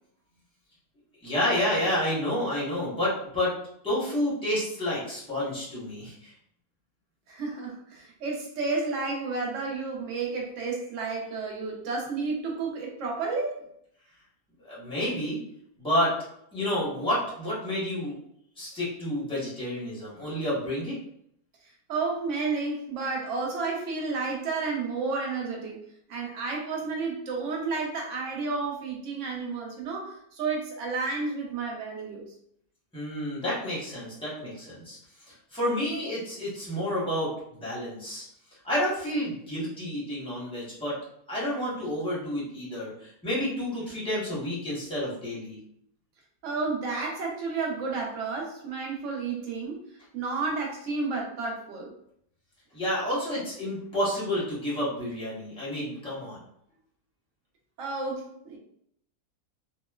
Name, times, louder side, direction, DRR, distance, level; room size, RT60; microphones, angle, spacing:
voice 1, 1.2-3.5 3.8-6.3 14.6-15.4 15.8-16.2 16.5-18.2 18.6-21.0 32.9-35.0 35.3-38.2 38.6-41.0 41.3-45.6 52.7-56.4, left 1 dB, 5° left, -8 dB, 0.7 m, -30 dB
voice 2, 7.3-13.6 21.9-25.8 26.1-32.2 46.4-49.8 50.1-51.9 57.8-58.6, right 4 dB, 60° right, 0 dB, 0.9 m, -31 dB
2.9 x 2.0 x 2.2 m, 0.71 s
omnidirectional pair, 1.6 m